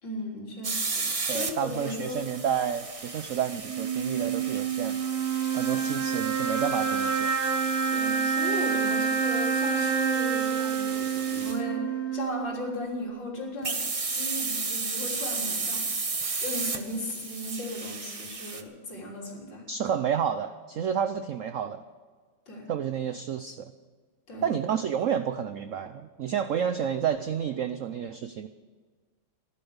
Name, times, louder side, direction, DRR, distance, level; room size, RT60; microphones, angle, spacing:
voice 1, 0.0-2.3 5.7-5.9 7.9-13.8 14.1-15.8 16.4-19.6 22.5-22.6 24.3-24.6, left 1 dB, 70° left, -2 dB, 4.3 m, -36 dB
sound 1, 0.6-11.6 13.6-18.6, right 4 dB, 35° right, 0.5 m, -34 dB
voice 2, 1.3-5.0 5.5-7.3 19.7-21.8 22.7-23.7 24.4-28.5, right 8 dB, 85° right, 11 dB, 0.7 m, -30 dB
sound 2, 3.6-13.1, right 6 dB, 50° right, 2.6 m, -28 dB
15.5 x 11.5 x 7.1 m, 1.5 s
omnidirectional pair, 2.1 m